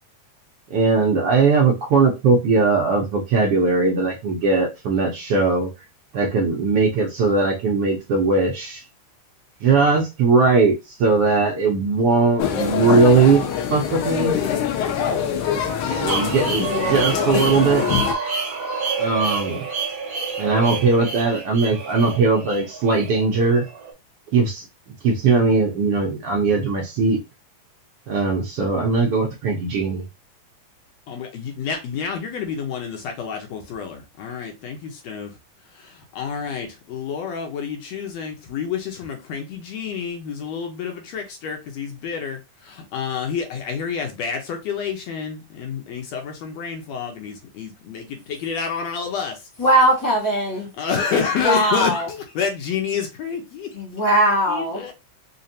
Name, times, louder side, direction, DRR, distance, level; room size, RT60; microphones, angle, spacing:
voice 1, 0.7-5.7 6.1-8.8 9.6-13.4 13.7-14.4 15.9-17.9 19.0-19.7 20.4-23.7 24.3-24.6 25.0-27.2 28.1-30.0, right 4 dB, 70° right, 1.4 m, -19 dB
sound 1, 12.4-18.1, left 8 dB, 90° left, 2.3 m, -24 dB
sound 2, 16.1-23.9, right 4 dB, 40° right, 1.5 m, -28 dB
voice 2, 31.1-35.3 35.7-49.5 50.8-53.8 54.5-54.9, left 6 dB, 70° left, 1.9 m, -29 dB
voice 3, 49.6-50.7 51.4-52.1 53.7-54.9, right 1 dB, 30° left, 0.3 m, -19 dB
5.1 x 2.5 x 2.7 m
omnidirectional pair, 3.4 m